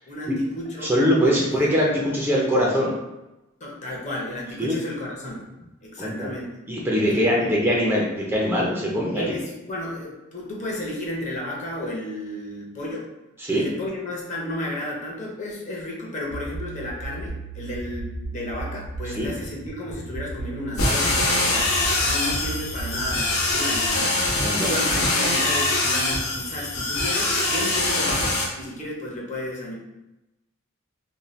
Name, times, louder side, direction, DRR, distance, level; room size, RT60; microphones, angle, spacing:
voice 1, 0.1-0.9 1.3-1.5 3.6-5.5 5.8-6.5 7.0-7.6 9.1-13.1 13.5-21.7 22.0-24.2 24.5-29.7, left 1 dB, 35° left, -3 dB, 0.6 m, -33 dB
voice 2, 0.8-2.9 4.6-4.7 6.0-6.3 6.7-9.3 13.4-13.7 19.1-19.3 24.4-24.7, equal, 10° right, -4 dB, 0.4 m, -22 dB
sound 1, 16.3-24.0, right 3 dB, 70° right, 0.6 m, -35 dB
sound 2, 20.8-28.4, left 2 dB, 80° left, 0.7 m, -23 dB
2.6 x 2.2 x 3.1 m, 0.98 s
head